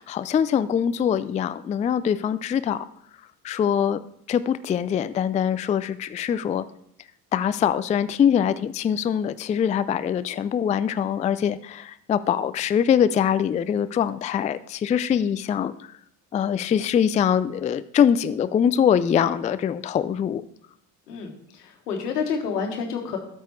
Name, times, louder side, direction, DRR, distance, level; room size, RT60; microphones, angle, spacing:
voice 1, 0.0-2.9 3.4-4.0 4.3-6.7 7.3-15.7 16.3-20.4, left 8 dB, 15° left, 14 dB, 0.3 m, -23 dB
voice 2, 21.1-23.2, left 6 dB, 85° left, 4 dB, 1.6 m, -29 dB
13.0 x 7.1 x 3.2 m, 0.69 s
hypercardioid pair, 55°, 46 cm